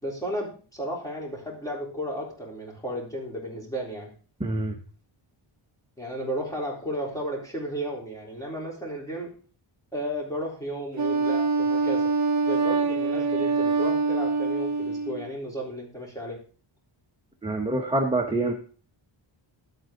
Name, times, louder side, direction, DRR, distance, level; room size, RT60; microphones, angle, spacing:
voice 1, 0.0-4.1 6.0-9.4 9.9-12.1 12.5-16.4, equal, 5° left, -3 dB, 3.7 m, -33 dB
voice 2, 4.4-4.8 17.4-18.5, right 2 dB, 10° right, 2 dB, 1.0 m, -26 dB
Wind instrument woodwind instrument, 11.0-15.3, right 4 dB, 35° right, 0.8 m, -25 dB
11.5 x 8.8 x 3.8 m, 0.39 s
wide cardioid pair, 165°, 50 cm